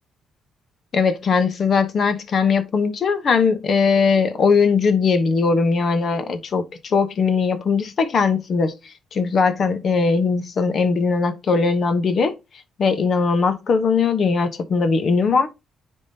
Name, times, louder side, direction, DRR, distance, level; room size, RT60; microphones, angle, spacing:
voice 1, 0.9-8.7 9.1-12.4 12.8-15.5, left 5 dB, 50° left, 1.0 m, -19 dB
9.8 x 3.7 x 2.8 m
cardioid pair, 90°, 0 cm